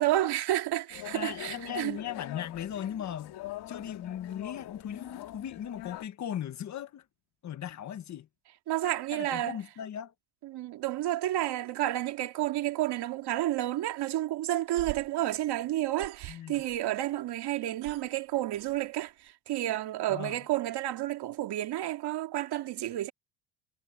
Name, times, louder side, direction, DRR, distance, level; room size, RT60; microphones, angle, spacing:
voice 1, 0.0-2.0 8.7-9.6 10.4-23.1, right 14 dB, 60° right, 2.5 m, -30 dB
sound 1, 0.9-6.1, left 14 dB, 60° left, 2.2 m, -43 dB
voice 2, 1.1-3.4 3.7-7.0 7.4-8.3 9.1-10.1 16.3-16.6 20.1-20.4, left 10 dB, 40° left, 1.4 m, -38 dB
sound 2, 14.5-17.1 17.4-19.3, right 20 dB, 90° right, 2.3 m, -45 dB
cardioid pair, 140°, 45 cm